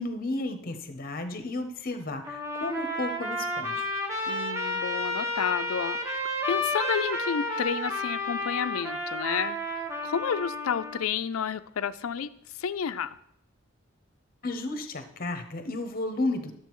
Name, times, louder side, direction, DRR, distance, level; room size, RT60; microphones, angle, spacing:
voice 1, 0.0-3.9 14.4-16.5, left 2 dB, 40° left, 8 dB, 0.8 m, -33 dB
Trumpet, 2.2-11.1, left 1 dB, 15° right, 1.0 m, -31 dB
voice 2, 4.3-6.0 6.5-13.2, left 7 dB, 80° left, 13 dB, 0.4 m, -31 dB
12.5 x 7.6 x 3.1 m, 0.72 s
head